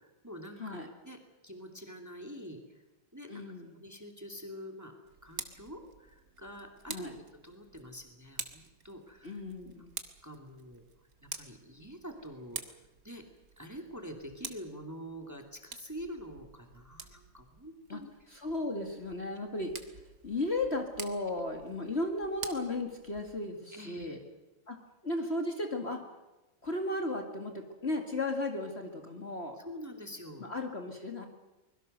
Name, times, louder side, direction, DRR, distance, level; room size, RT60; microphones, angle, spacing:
voice 1, 0.0-2.8 3.1-3.4 3.7-5.0 5.2-9.4 10.2-10.8 11.2-12.8 13.0-13.2 13.6-18.3 23.7-24.2 29.6-30.5, equal, 10° right, 4 dB, 2.4 m, -46 dB
voice 2, 3.3-3.7 6.9-7.2 9.2-9.9 17.9-18.0 18.3-24.2 24.7-24.8 25.0-26.0 26.6-29.6 30.4-31.3, left 2 dB, 35° left, 3 dB, 2.2 m, -35 dB
Tick, 5.0-23.5, right 6 dB, 50° right, 1.9 m, -48 dB
24.5 x 21.5 x 6.7 m, 1.1 s
omnidirectional pair, 2.1 m